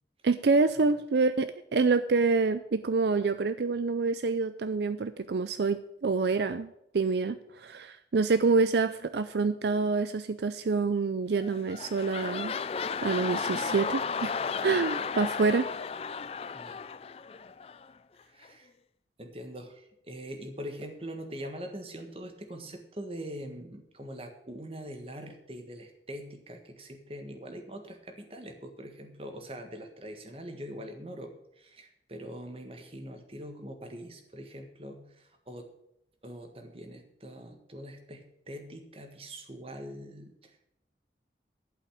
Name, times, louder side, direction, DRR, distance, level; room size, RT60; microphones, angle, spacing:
voice 1, 0.2-6.7 6.9-12.6 13.0-14.3 14.6-15.7, right 4 dB, 70° right, 12 dB, 0.5 m, -27 dB
sound 1, 11.4-17.9 18.4-18.5, left 5 dB, 35° left, 0.3 m, -34 dB
voice 2, 18.3-18.7 19.2-35.7 36.2-40.7, equal, 30° right, 4 dB, 1.5 m, -43 dB
11.5 x 5.7 x 8.6 m, 0.80 s
head